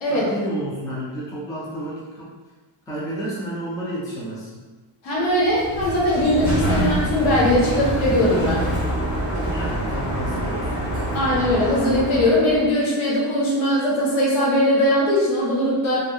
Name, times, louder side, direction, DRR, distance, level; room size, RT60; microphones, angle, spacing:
voice 1, 0.1-2.3 2.9-4.6 9.3-10.7, right 1 dB, 10° left, -6 dB, 0.3 m, -31 dB
voice 2, 5.0-8.6 11.1-16.0, left 1 dB, 85° left, -6 dB, 1.1 m, -20 dB
Sliding door, 5.4-12.7, right 1 dB, 40° left, 1.0 m, -25 dB
2.5 x 2.5 x 2.3 m, 1.3 s
cardioid pair, 165°, 47 cm